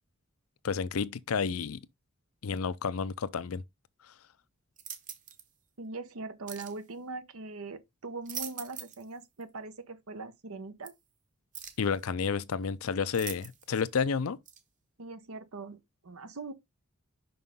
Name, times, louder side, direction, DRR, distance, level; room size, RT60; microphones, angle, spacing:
voice 1, 0.6-1.8 2.4-3.6 11.8-14.4, left 6 dB, 80° left, 0.5 m, -30 dB
sound 1, 4.8-5.5 6.5-6.8 8.0-9.1 9.4-9.5 10.8-10.9 11.5-11.9 13.1-13.8 14.5-14.6, right 8 dB, 40° right, 1.0 m, -42 dB
voice 2, 5.8-10.9 15.0-16.5, right 3 dB, 90° right, 0.9 m, -41 dB
5.6 x 5.6 x 3.6 m
head